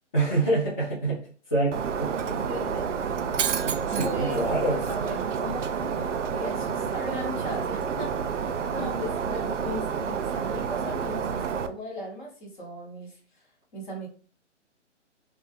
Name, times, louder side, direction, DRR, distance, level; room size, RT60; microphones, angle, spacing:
voice 1, 0.1-1.2 1.5-2.5 3.6-4.8, right 2 dB, 15° left, -10 dB, 0.5 m, -27 dB
Shatter, 1.7-11.7, right 6 dB, 75° right, 0.5 m, -29 dB
voice 2, 2.5-2.9 3.9-14.1, equal, 40° left, 0 dB, 1.1 m, -37 dB
2.3 x 2.2 x 3.2 m, 0.42 s
figure-of-eight pair, 145°, 36 cm